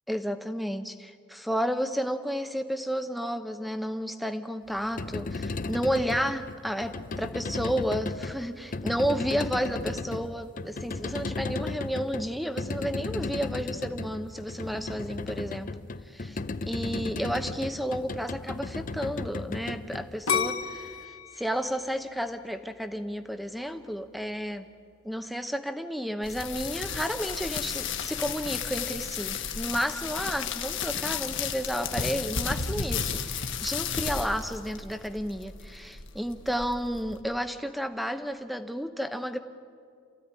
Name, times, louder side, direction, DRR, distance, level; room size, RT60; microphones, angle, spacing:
voice 1, 0.1-15.7 16.1-24.6 25.0-39.4, equal, ahead, 9 dB, 0.8 m, -32 dB
sound 1, 4.7-20.9, left 3 dB, 35° left, 0.5 m, -35 dB
sound 2, 20.3-23.2 23.7-24.2, left 6 dB, 75° left, 1.4 m, -32 dB
sound 3, 26.2-37.2, left 6 dB, 55° left, 1.5 m, -33 dB
28.0 x 15.0 x 9.7 m, 2.3 s
head